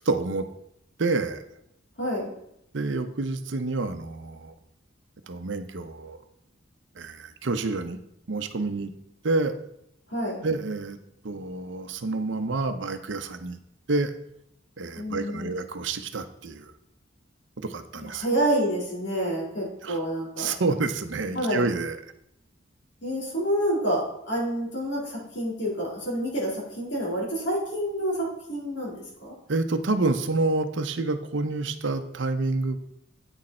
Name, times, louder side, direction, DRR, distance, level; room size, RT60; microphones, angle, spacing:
voice 1, 0.1-0.5 1.0-1.4 2.7-4.5 5.3-6.2 7.0-8.0 8.3-8.9 9.2-9.6 10.4-11.0 11.2-13.6 13.9-14.1 14.8-16.7 17.6-18.2 19.8-20.0 20.4-22.0 29.5-32.8, right 3 dB, 70° right, 9 dB, 0.7 m, -28 dB
voice 2, 2.0-2.3 10.1-10.4 15.0-15.6 18.1-20.5 21.3-21.7 23.0-29.3, right 1 dB, 60° left, -4 dB, 3.8 m, -28 dB
8.9 x 6.5 x 4.3 m, 0.76 s
head